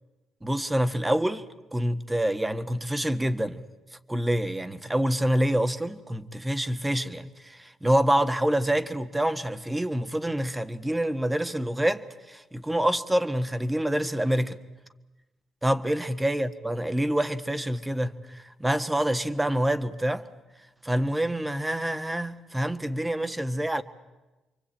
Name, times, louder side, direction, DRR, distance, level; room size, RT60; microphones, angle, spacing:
voice 1, 0.4-3.6 4.1-14.6 15.6-20.3 20.8-23.8, right 1 dB, 10° right, 1.5 m, -27 dB
28.0 x 24.0 x 8.8 m
cardioid pair, 90°, 0 cm